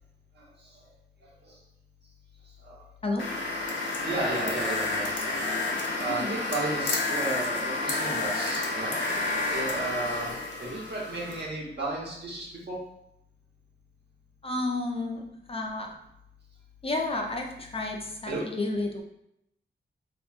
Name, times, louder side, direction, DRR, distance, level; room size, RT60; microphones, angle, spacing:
sound 1, 3.2-11.4, left 2 dB, 75° left, 0.7 m, -30 dB
voice 1, 4.0-5.2 5.5-5.7 6.0-8.9 9.5-10.3 10.6-12.8 18.3-18.4, right 2 dB, 60° right, -4 dB, 1.0 m, -33 dB
voice 2, 14.4-15.9 16.8-19.0, left 2 dB, 30° left, 1 dB, 0.4 m, -31 dB
3.4 x 2.6 x 2.4 m, 0.79 s
wide cardioid pair, 90°, 19 cm